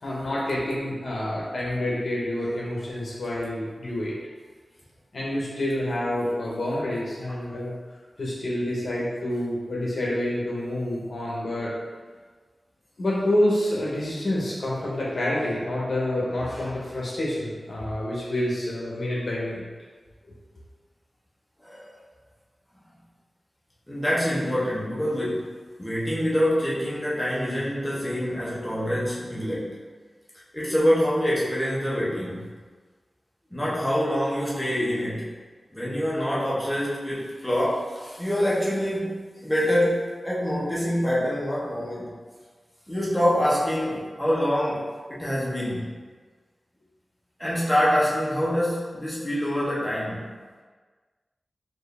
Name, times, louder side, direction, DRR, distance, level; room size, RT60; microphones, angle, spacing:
voice 1, 0.0-4.1 5.1-7.7 8.2-11.7 13.0-19.6, left 1 dB, 65° left, -6 dB, 0.9 m, -28 dB
voice 2, 21.6-22.0 23.9-25.5 25.8-29.8 30.5-32.4 33.5-35.3 35.7-42.1 42.9-45.9 47.4-50.2, equal, 10° left, -8 dB, 1.1 m, -25 dB
4.5 x 2.7 x 3.3 m, 1.5 s
wide cardioid pair, 100°, 0 cm